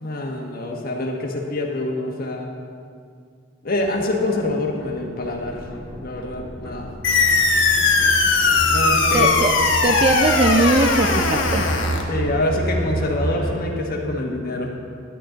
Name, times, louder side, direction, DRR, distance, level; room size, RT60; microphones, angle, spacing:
voice 1, 0.0-2.5 3.6-5.6 6.0-6.9 8.7-9.3 12.1-14.7, left 2 dB, 50° left, 1 dB, 1.3 m, -25 dB
sound 1, 3.7-13.6, right 1 dB, 90° left, 2.0 m, -30 dB
sound 2, 7.0-12.0, left 4 dB, 65° left, 1.1 m, -19 dB
voice 2, 9.1-9.5 9.8-11.7, right 2 dB, 30° right, 4 dB, 0.4 m, -20 dB
11.0 x 10.5 x 3.9 m, 2.2 s
head